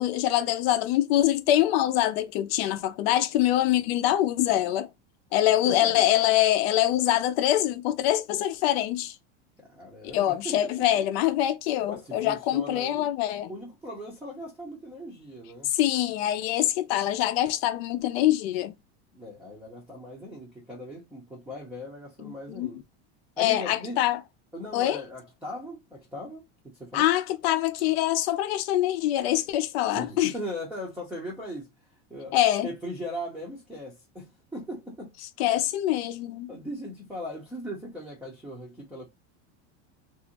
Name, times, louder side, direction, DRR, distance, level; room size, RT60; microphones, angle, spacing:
voice 1, 0.0-4.9 5.3-9.1 10.1-13.5 15.7-18.7 22.6-22.7 23.4-24.2 24.7-25.0 26.9-30.3 32.3-32.7 35.4-36.5, left 13 dB, 65° left, 0.6 m, -24 dB
voice 2, 5.6-6.1 9.6-10.9 11.9-13.1 13.5-15.7 19.1-22.8 23.4-24.0 24.5-27.1 29.9-31.7 32.1-32.4 32.6-35.1 36.5-39.1, equal, 5° right, 0.6 m, -39 dB
3.0 x 2.6 x 2.8 m
supercardioid pair, 155°, 34 cm